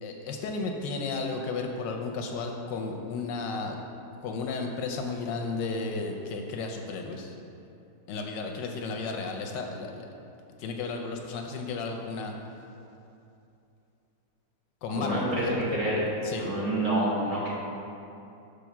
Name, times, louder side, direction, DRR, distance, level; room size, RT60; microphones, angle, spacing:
voice 1, 0.0-3.8 4.2-7.3 8.1-10.1 10.6-12.3 14.8-15.5 16.2-16.5, left 4 dB, 75° left, 3 dB, 1.1 m, -33 dB
voice 2, 14.9-15.4 15.7-16.0 16.4-17.5, right 1 dB, 45° right, -7 dB, 1.5 m, -27 dB
6.3 x 3.4 x 5.8 m, 2.7 s
omnidirectional pair, 2.2 m